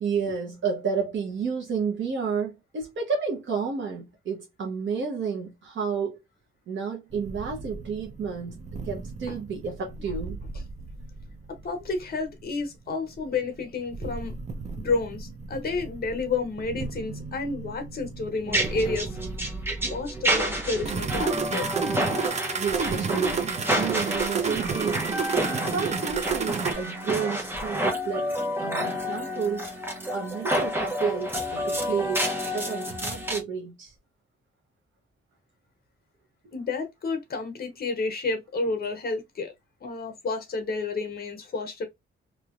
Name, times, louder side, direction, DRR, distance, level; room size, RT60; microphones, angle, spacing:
voice 1, 0.0-6.2 6.7-8.6 8.8-10.4 22.6-25.0 25.5-28.3 28.6-29.7 30.1-32.3 32.5-33.9 36.4-36.5, right 6 dB, 65° right, 1.0 m, -31 dB
sound 1, 7.1-26.7, right 5 dB, 35° right, 0.5 m, -33 dB
voice 2, 11.5-14.3 14.7-19.2 19.9-21.7 36.5-39.5 39.8-41.9, left 3 dB, 50° left, 1.1 m, -30 dB
sound 2, 18.5-33.4, equal, 10° right, 0.9 m, -29 dB
3.1 x 2.9 x 2.5 m
wide cardioid pair, 145°, 21 cm